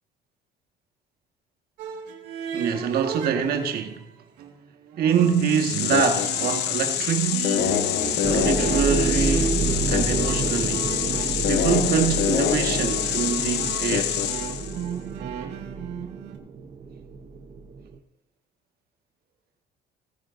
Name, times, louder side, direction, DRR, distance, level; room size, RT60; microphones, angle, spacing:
sound 1, 1.8-4.0 4.4-16.4, right 7 dB, 90° right, 1.7 m, -34 dB
voice 1, 2.5-4.0 5.0-7.5 8.2-9.6 9.9-10.9 11.4-14.2, right 7 dB, 65° right, 1.5 m, -25 dB
sound 2, 5.2-14.8, left 10 dB, 80° left, 0.8 m, -26 dB
sound 3, 8.2-18.0, right 4 dB, 40° right, 0.9 m, -30 dB
17.5 x 10.0 x 2.6 m
cardioid pair, 110°, 17 cm